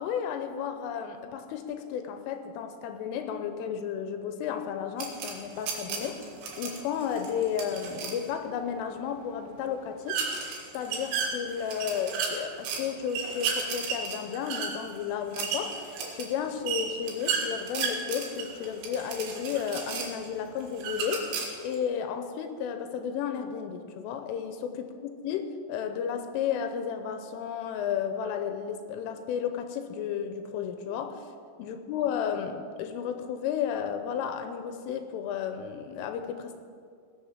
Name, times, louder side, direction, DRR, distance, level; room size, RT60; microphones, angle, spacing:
voice 1, 0.0-6.3 6.6-10.2 10.7-21.3 21.6-31.3 31.6-36.6, left 8 dB, 85° left, 7 dB, 3.2 m, -33 dB
sound 1, 5.0-8.2 10.1-12.8 13.1-20.3 20.7-21.8, right 5 dB, 75° right, 4.4 m, -33 dB
19.0 x 6.8 x 7.3 m, 2.3 s
omnidirectional pair, 5.9 m